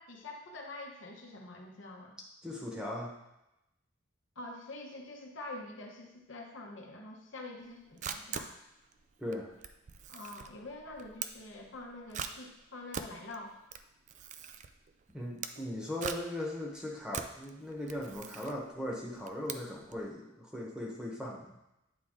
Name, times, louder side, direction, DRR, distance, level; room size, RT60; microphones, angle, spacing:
voice 1, 0.0-2.2 4.4-8.5 10.1-13.5, left 2 dB, 65° left, 1 dB, 1.0 m, -46 dB
voice 2, 2.4-3.1 9.2-9.5 15.1-21.6, left 1 dB, 5° right, -2 dB, 1.1 m, -38 dB
Camera, 7.6-20.1, right 7 dB, 40° right, 0.3 m, -43 dB
9.0 x 3.7 x 3.8 m, 0.88 s
head